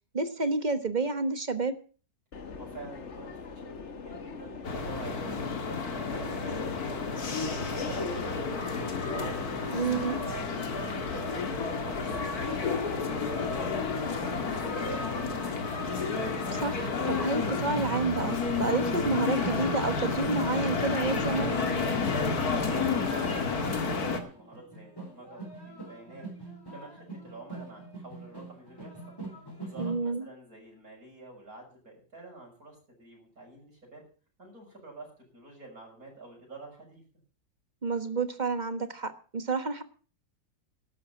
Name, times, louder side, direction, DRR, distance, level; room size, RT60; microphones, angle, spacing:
voice 1, 0.1-1.7 9.7-10.2 16.5-21.6 29.8-30.2 37.8-39.8, right 3 dB, 30° right, 11 dB, 1.3 m, -30 dB
Subway metro underground, 2.3-15.5, left 4 dB, 45° left, 1.5 m, -42 dB
voice 2, 2.6-3.8 4.0-9.0 9.5-15.7 22.4-29.2 29.6-34.0 34.4-37.0, right 3 dB, 60° right, -1 dB, 7.2 m, -48 dB
sound 1, 4.6-24.2, left 4 dB, 65° left, 2.5 m, -31 dB
sound 2, 17.4-30.0, right 2 dB, 15° left, 4.7 m, -43 dB
12.5 x 11.0 x 7.1 m, 0.39 s
omnidirectional pair, 1.7 m